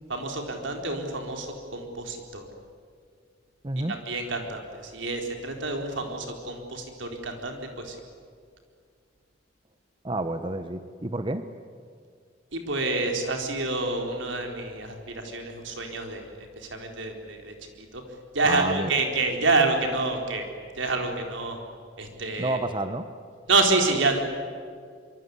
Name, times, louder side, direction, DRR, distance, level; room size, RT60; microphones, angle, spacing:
voice 1, 0.1-2.5 3.9-8.0 12.5-18.0 18.3-20.4 20.8-21.6 22.0-22.6 23.5-24.2, right 3 dB, 85° right, 3 dB, 4.3 m, -28 dB
voice 2, 3.6-3.9 10.0-11.5 18.4-18.9 22.4-23.1, right 2 dB, 25° right, 10 dB, 1.0 m, -29 dB
25.0 x 24.5 x 9.7 m, 2.1 s
head